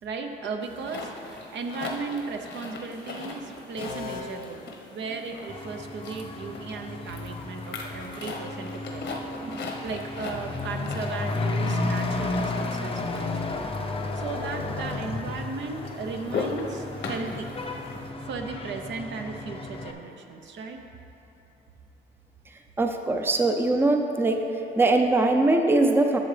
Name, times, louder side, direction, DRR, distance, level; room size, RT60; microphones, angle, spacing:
voice 1, 0.0-13.7 14.1-17.5 18.2-20.8, right 4 dB, 65° right, 4 dB, 0.8 m, -36 dB
sound 1, 0.6-18.1, left 4 dB, 65° left, 1.1 m, -39 dB
sound 2, 3.8-5.7, left 4 dB, 85° left, 0.9 m, -40 dB
Truck / Accelerating revving vroom, 5.5-19.9, left 2 dB, 30° left, 0.6 m, -33 dB
voice 2, 22.5-24.4 24.8-26.2, right 2 dB, 10° right, 4 dB, 0.5 m, -22 dB
12.0 x 6.7 x 3.4 m, 2.9 s
cardioid pair, 90°, 20 cm